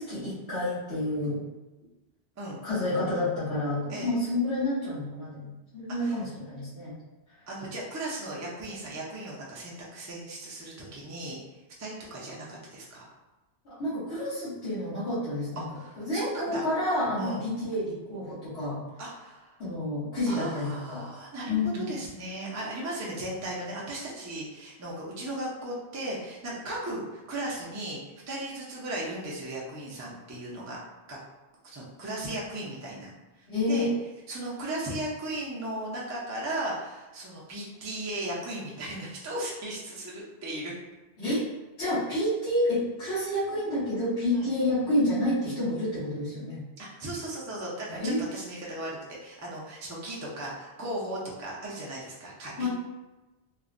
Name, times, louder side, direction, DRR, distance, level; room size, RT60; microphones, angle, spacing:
voice 1, 0.0-1.4 2.6-6.9 13.8-15.6 16.0-18.9 19.6-21.1 21.5-21.9 33.5-33.9 41.2-41.4 41.8-46.6 47.9-48.2 52.6-52.7, left 1 dB, 75° left, -14 dB, 1.3 m, -29 dB
voice 2, 7.5-11.4 11.8-13.1 15.6-16.7 17.2-17.4 19.0-19.6 20.3-28.0 28.3-30.8 31.1-31.2 31.6-33.1 33.4-33.9 34.3-40.7 44.3-44.5 46.8-52.7, right 1 dB, 25° right, -4 dB, 0.4 m, -36 dB
3.0 x 2.1 x 2.5 m, 1.1 s
omnidirectional pair, 1.1 m